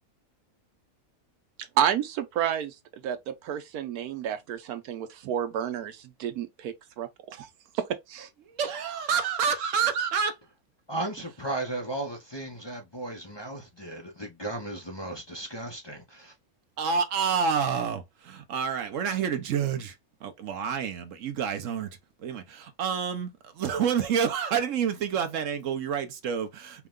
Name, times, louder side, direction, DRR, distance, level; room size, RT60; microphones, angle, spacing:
voice 1, 1.6-2.8 3.0-7.5 7.7-8.3, right 9 dB, 90° right, 1.2 m, -30 dB
voice 2, 8.4-10.4 16.8-21.9 22.2-26.9, right 7 dB, 65° right, 1.1 m, -28 dB
voice 3, 10.9-16.3, right 2 dB, 40° left, 0.4 m, -35 dB
4.6 x 2.2 x 3.6 m
omnidirectional pair, 1.6 m